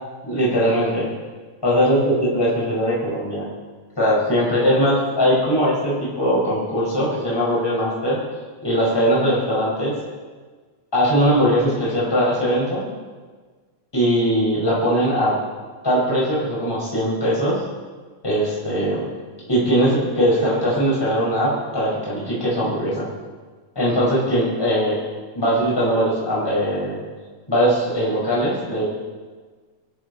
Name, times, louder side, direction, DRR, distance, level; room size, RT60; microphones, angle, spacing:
voice 1, 0.2-1.1 1.6-3.5 4.0-8.2 8.6-10.0 10.9-12.8 13.9-15.4 15.8-17.6 18.2-19.1 19.5-23.1 23.7-25.0 25.3-27.0 27.5-28.9, equal, 5° left, -6 dB, 5.1 m, -20 dB
23.0 x 13.5 x 4.2 m, 1.4 s
omnidirectional pair, 3.6 m